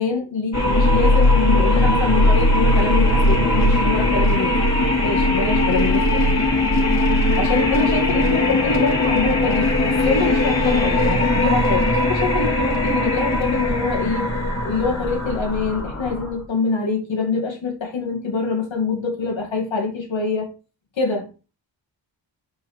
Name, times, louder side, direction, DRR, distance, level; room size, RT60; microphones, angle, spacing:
voice 1, 0.0-4.6 5.0-6.3 7.4-14.3 14.6-20.5 21.0-21.3, left 4 dB, 75° left, 2.4 m, -25 dB
sound 1, 0.5-16.4, left 1 dB, 35° left, 2.8 m, -19 dB
6.0 x 4.6 x 4.7 m
cardioid pair, 75°, 46 cm